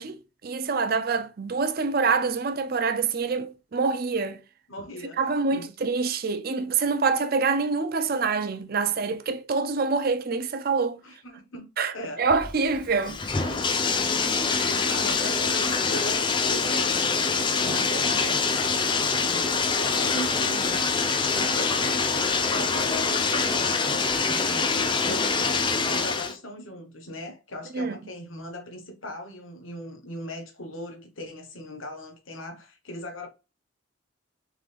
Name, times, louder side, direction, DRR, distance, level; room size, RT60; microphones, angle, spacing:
voice 1, 0.0-4.4 5.2-11.0 11.8-11.9 12.2-13.5 27.7-28.0, right 4 dB, 50° right, 0.5 m, -26 dB
voice 2, 4.7-5.9 11.0-11.7 11.9-12.2 14.7-20.9 21.3-33.3, equal, 80° left, 1.1 m, -39 dB
Bathtub (filling or washing), 12.3-26.3, left 4 dB, 25° left, 0.5 m, -25 dB
3.8 x 3.7 x 3.4 m
head